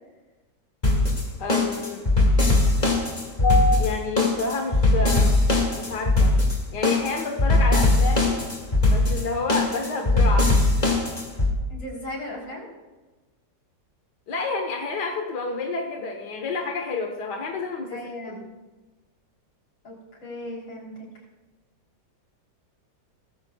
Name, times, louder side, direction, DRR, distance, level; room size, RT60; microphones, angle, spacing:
sound 1, 0.8-11.5, left 2 dB, 25° left, 2.0 m, -20 dB
voice 1, 1.4-2.0 3.4-5.3 5.8-6.3 6.7-8.4 8.9-10.5 14.3-18.0 18.3-18.5, left 3 dB, 65° left, 2 dB, 1.8 m, -28 dB
voice 2, 11.7-12.7 17.9-18.4 19.8-19.9 20.2-21.1, left 1 dB, 85° left, -2 dB, 4.4 m, -36 dB
19.0 x 14.0 x 2.4 m, 1.2 s
omnidirectional pair, 2.0 m